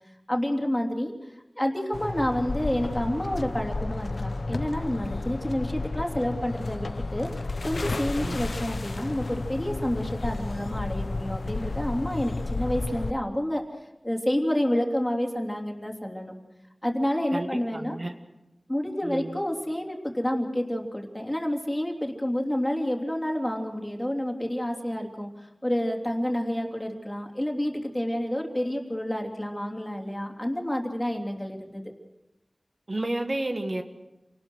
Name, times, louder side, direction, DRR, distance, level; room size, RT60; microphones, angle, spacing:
voice 1, 0.3-1.1 1.6-7.3 7.6-13.6 14.0-16.3 16.8-18.0 18.7-31.8, equal, 15° left, 2 dB, 3.1 m, -29 dB
sound 1, 1.9-13.1, left 3 dB, 90° left, 0.8 m, -32 dB
voice 2, 17.3-18.1 19.0-19.4 32.9-33.8, right 1 dB, 55° right, 5 dB, 1.7 m, -31 dB
28.0 x 19.0 x 6.3 m, 0.98 s
wide cardioid pair, 60°, 0 cm